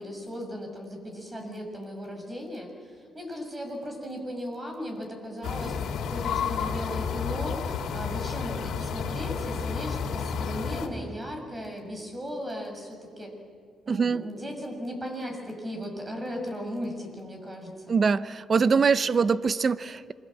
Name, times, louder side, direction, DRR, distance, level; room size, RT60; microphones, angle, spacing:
voice 1, 0.0-13.3 13.8-18.0, equal, 25° right, 3 dB, 6.6 m, -37 dB
sound 1, 5.4-10.9, left 6 dB, 70° left, 3.0 m, -31 dB
voice 2, 13.9-14.2 17.9-20.1, right 5 dB, 40° right, 16 dB, 0.8 m, -23 dB
27.5 x 22.0 x 7.8 m, 2.3 s
cardioid pair, 90°, 0 cm